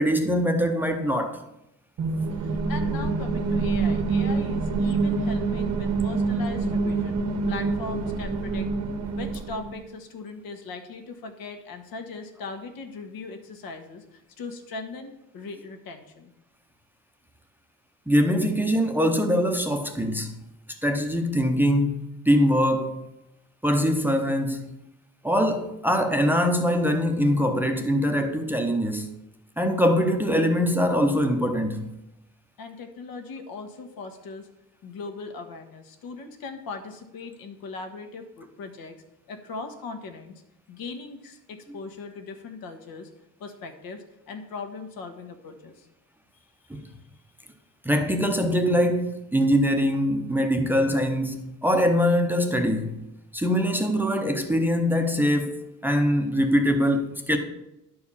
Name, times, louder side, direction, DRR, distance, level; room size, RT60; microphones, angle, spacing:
voice 1, 0.0-1.4 18.1-20.3 20.8-23.0 23.6-24.7 25.2-29.1 29.6-31.9 46.7-46.9 47.8-53.0 53.3-57.4, equal, 5° right, 0.6 m, -23 dB
sound 1, 2.0-9.8, right 4 dB, 50° right, 0.9 m, -26 dB
voice 2, 2.3-8.7 9.2-16.3 32.6-34.5 34.8-39.0 39.3-40.4 40.7-43.1 43.4-45.9 46.7-46.9, left 4 dB, 80° left, 1.5 m, -39 dB
11.0 x 4.7 x 7.0 m
cardioid pair, 170°, 35 cm